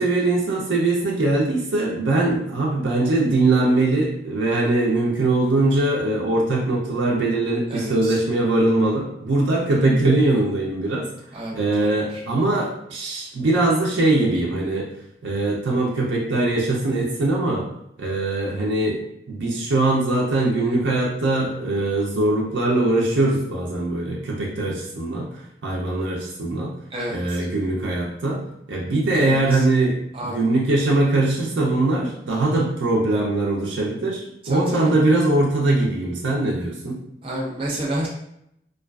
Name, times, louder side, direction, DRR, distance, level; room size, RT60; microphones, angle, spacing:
voice 1, 0.0-11.0 11.5-14.9 15.2-17.7 18.0-19.0 19.3-25.3 25.6-26.7 27.1-28.4 28.7-37.0, right 2 dB, 80° right, -3 dB, 0.5 m, -21 dB
voice 2, 7.7-8.1 11.3-12.2 26.9-27.4 29.1-29.6 30.1-30.5 34.4-34.9 37.2-38.1, right 1 dB, 30° right, -4 dB, 0.4 m, -30 dB
2.4 x 2.3 x 2.2 m, 0.76 s
head